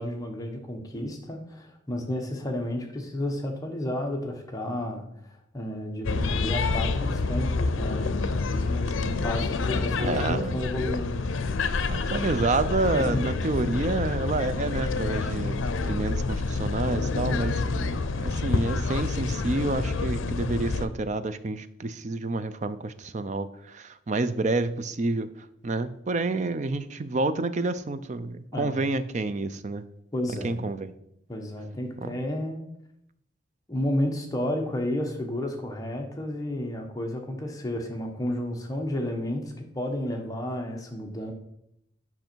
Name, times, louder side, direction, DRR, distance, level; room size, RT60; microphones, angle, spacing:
voice 1, 0.0-11.3 12.9-13.2 28.5-28.8 30.1-30.5 31.3-32.6 33.7-41.3, left 1 dB, 20° left, 2 dB, 1.0 m, -32 dB
sound 1, 6.0-20.9, left 3 dB, 80° left, 0.6 m, -28 dB
voice 2, 10.0-10.6 11.9-29.8 30.4-30.9 32.0-32.2, right 2 dB, 35° right, 12 dB, 0.4 m, -29 dB
7.8 x 6.0 x 4.5 m, 0.78 s
head